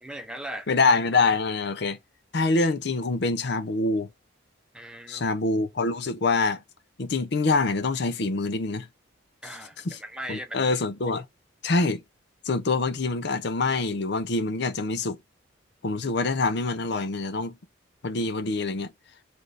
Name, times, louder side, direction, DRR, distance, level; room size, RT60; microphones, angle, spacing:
voice 1, 0.0-0.7 4.7-5.3 9.4-10.6, right 1 dB, 5° right, 0.6 m, -38 dB
voice 2, 0.7-2.0 2.3-4.1 5.1-6.6 7.0-8.9 9.8-10.0 10.3-11.2 11.6-12.0 12.4-15.2 15.8-17.5 18.0-18.9, left 3 dB, 55° left, 0.6 m, -25 dB
6.2 x 2.5 x 3.3 m
head